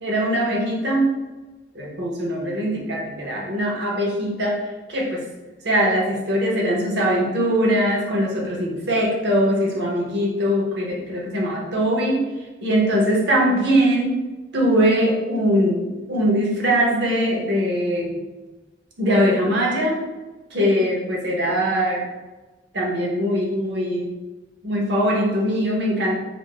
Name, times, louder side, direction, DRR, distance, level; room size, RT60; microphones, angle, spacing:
voice 1, 0.0-1.2 1.7-5.3 5.6-12.2 12.6-14.2 14.5-18.2 19.0-20.0 20.5-22.1 22.7-24.1 24.6-26.2, equal, 60° right, -3 dB, 0.7 m, -21 dB
2.4 x 2.0 x 3.5 m, 1.2 s
head